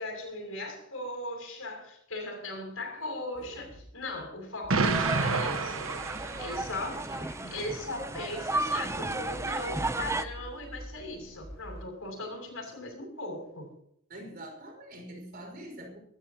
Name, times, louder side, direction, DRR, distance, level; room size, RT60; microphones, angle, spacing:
voice 1, 0.0-5.9 6.4-7.2 7.5-13.7, left 2 dB, 75° left, 6.8 m, -38 dB
sound 1, 3.3-11.8, equal, 45° left, 3.1 m, -48 dB
Explosion, 4.7-6.9, right 4 dB, 70° right, 1.3 m, -29 dB
sound 2, 4.8-10.2, right 2 dB, 15° right, 0.6 m, -34 dB
voice 2, 6.2-7.3 14.1-16.0, right 1 dB, 45° right, 5.2 m, -45 dB
23.5 x 13.5 x 2.9 m
head